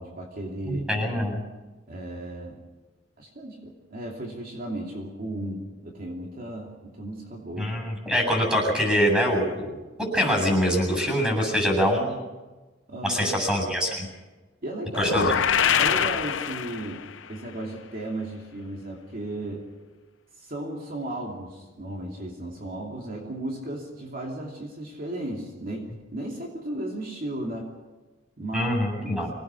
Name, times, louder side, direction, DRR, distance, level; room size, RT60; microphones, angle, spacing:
voice 1, 0.0-0.8 1.9-2.6 3.2-7.7 12.9-13.3 14.6-15.3 15.8-19.7 20.3-27.7 28.4-28.7 29.0-29.3, right 1 dB, 50° right, 0 dB, 2.8 m, -35 dB
voice 2, 0.7-1.4 7.6-12.2 13.0-14.1 14.9-15.3 28.5-29.3, equal, 5° right, 1 dB, 7.8 m, -24 dB
sound 1, 15.0-17.2, left 8 dB, 80° left, 0.7 m, -24 dB
25.5 x 19.0 x 6.3 m, 1.2 s
head